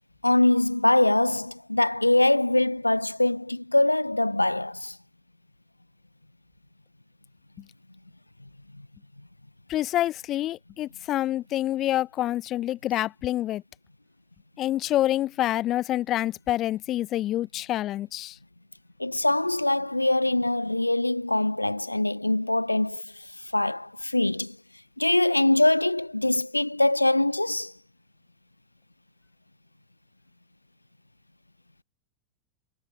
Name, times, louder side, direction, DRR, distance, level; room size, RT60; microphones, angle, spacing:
voice 1, 0.2-5.0 19.0-23.0 23.5-24.6 25.0-27.7, left 1 dB, 85° left, 0.4 m, -23 dB
voice 2, 9.7-13.6 14.6-18.4, left 13 dB, 35° left, 0.7 m, -27 dB
figure-of-eight pair, 90°, 0 cm